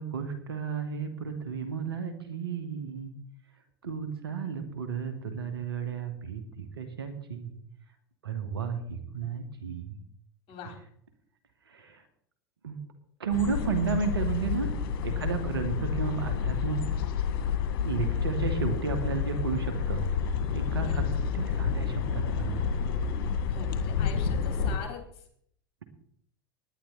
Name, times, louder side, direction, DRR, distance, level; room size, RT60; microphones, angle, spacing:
voice 1, 0.0-3.1 3.8-7.5 8.2-10.0 11.7-12.0 12.6-12.8 13.2-14.7 15.0-16.8 17.8-20.0 20.5-21.0 21.3-22.8, right 6 dB, 85° right, 9 dB, 2.4 m, -33 dB
sound 1, 13.3-24.8, left 6 dB, 65° left, 2.1 m, -29 dB
voice 2, 23.5-25.3, left 6 dB, 50° left, 3 dB, 4.3 m, -42 dB
19.0 x 10.5 x 4.3 m, 0.67 s
hypercardioid pair, 85°, 12 cm